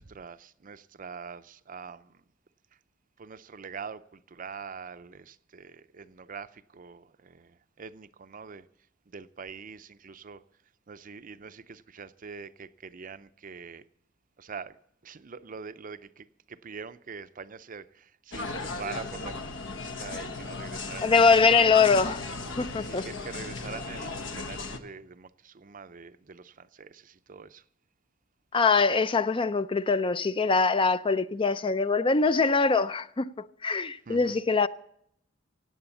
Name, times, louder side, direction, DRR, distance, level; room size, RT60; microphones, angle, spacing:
voice 1, 0.0-2.1 3.2-8.6 9.1-10.4 10.9-13.8 14.4-14.8 15.0-21.2 22.8-27.6 34.1-34.4, right 5 dB, 45° right, 0.6 m, -44 dB
sound 1, 18.3-24.8, left 3 dB, 75° left, 1.3 m, -36 dB
voice 2, 21.0-22.2 22.6-23.0 28.5-34.7, left 4 dB, 25° left, 0.4 m, -23 dB
17.0 x 8.6 x 7.1 m
head